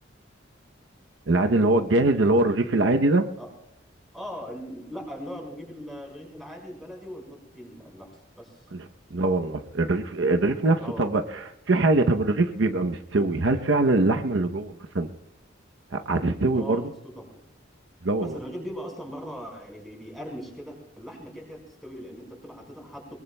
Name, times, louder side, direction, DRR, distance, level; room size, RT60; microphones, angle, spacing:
voice 1, 1.3-3.2 8.7-8.9 9.1-15.1 15.9-16.8 18.0-18.4, right 2 dB, 70° right, 6 dB, 0.7 m, -23 dB
voice 2, 4.1-8.6 10.8-11.1 13.1-13.3 16.5-17.4 18.2-23.2, equal, ahead, -2 dB, 4.8 m, -40 dB
23.0 x 21.5 x 2.2 m, 0.77 s
head